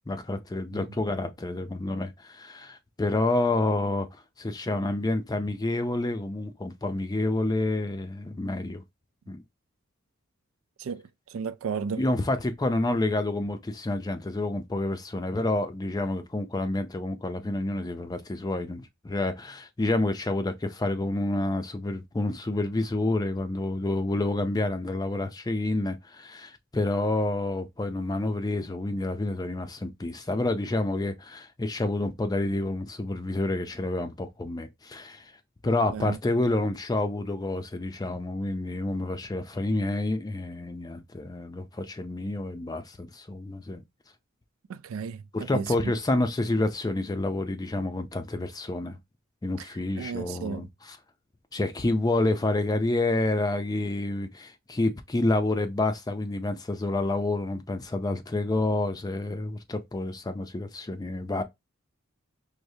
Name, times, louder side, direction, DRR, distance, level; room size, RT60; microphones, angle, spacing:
voice 1, 0.1-4.1 4.4-8.8 9.3-9.4 12.0-35.3 35.6-43.8 45.3-49.0 49.4-51.0 51.5-61.4, left 2 dB, 20° left, 0.4 m, -28 dB
voice 2, 11.3-12.0 35.6-36.2 44.7-45.7 50.0-50.7, right 6 dB, 80° right, 0.3 m, -34 dB
4.8 x 2.0 x 2.7 m
head